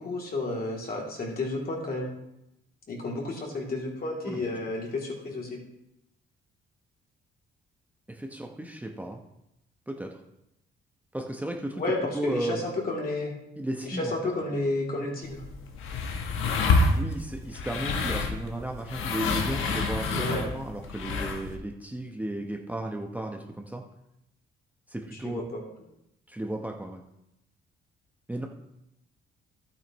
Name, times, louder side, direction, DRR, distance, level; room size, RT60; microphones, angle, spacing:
voice 1, 0.0-2.1 2.9-5.6 11.8-13.3 13.8-15.4 20.1-20.4 25.2-25.6, left 2 dB, 50° left, -2 dB, 3.0 m, -31 dB
voice 2, 8.1-9.2 9.9-10.1 11.1-11.8 12.1-12.6 13.6-14.1 16.9-23.8 24.9-25.4 26.3-27.0 28.3-28.5, right 1 dB, 10° right, 1 dB, 0.9 m, -34 dB
sound 1, 15.2-21.6, left 3 dB, 85° left, 1.3 m, -28 dB
12.0 x 8.9 x 3.1 m, 0.85 s
cardioid pair, 90°, 20 cm